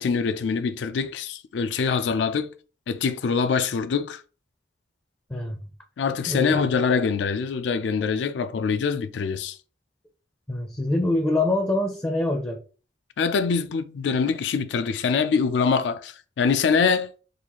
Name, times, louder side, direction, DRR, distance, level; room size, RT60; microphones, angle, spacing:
voice 1, 0.0-2.5 2.9-4.2 6.0-9.6 13.2-17.1, left 5 dB, 70° left, 0.4 m, -24 dB
voice 2, 6.3-6.6 10.5-12.6, left 2 dB, 15° left, 0.4 m, -24 dB
3.8 x 2.4 x 2.9 m
head